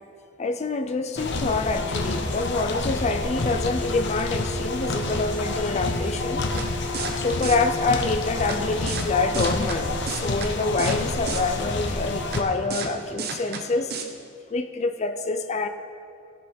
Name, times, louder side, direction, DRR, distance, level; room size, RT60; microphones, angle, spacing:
voice 1, 0.4-6.4 7.2-13.9 14.5-15.7, left 3 dB, 35° left, 8 dB, 0.5 m, -26 dB
sound 1, 1.2-12.4, left 2 dB, 60° left, 1.0 m, -28 dB
Car passing by / Truck, 1.8-7.4, equal, 35° right, 1.9 m, -47 dB
sound 2, 6.6-6.7 6.9-7.1 7.4-7.6 8.5-8.6 8.9-9.0 9.3-9.8 10.1-10.5 10.8-11.0 11.3-11.4 12.3-12.4 12.7-12.9 13.2-13.6 13.9-14.0, right 5 dB, 55° right, 1.0 m, -31 dB
17.0 x 6.1 x 5.2 m, 2.6 s
head